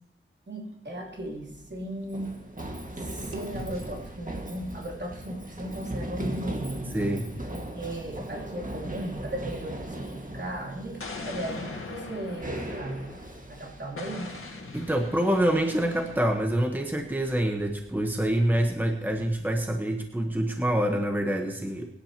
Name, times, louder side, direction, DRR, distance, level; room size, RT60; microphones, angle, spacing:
voice 1, 0.5-2.3 3.0-6.9 7.5-11.0 11.2-13.1 13.5-14.4, right 1 dB, 55° right, -2 dB, 3.1 m, -36 dB
sound 1, 0.6-2.9 3.3-7.3, right 1 dB, 80° right, 2.7 m, -47 dB
Run, 1.1-19.7, right 1 dB, 40° right, 1.9 m, -39 dB
voice 2, 6.9-7.3 14.7-21.9, right 1 dB, 10° right, 3 dB, 1.2 m, -26 dB
Explosion, 11.0-13.4 14.0-16.5, left 3 dB, 90° left, 1.8 m, -41 dB
22.5 x 10.5 x 3.0 m, 0.87 s
wide cardioid pair, 55°, 21 cm